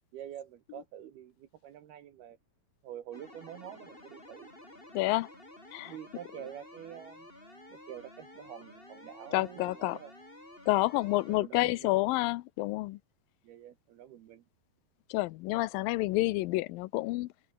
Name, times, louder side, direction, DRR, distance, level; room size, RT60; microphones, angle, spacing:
voice 1, 0.1-2.4 2.8-4.5 5.8-7.3 7.7-10.1 11.3-12.0 13.4-14.4, right 11 dB, 70° right, 3.3 m, -47 dB
sound 1, 3.1-11.4, left 1 dB, 10° left, 7.4 m, -52 dB
voice 2, 4.9-5.3 5.7-5.9 9.3-10.0 10.7-13.0 15.1-17.3, left 20 dB, 85° left, 2.0 m, -29 dB
omnidirectional pair, 4.8 m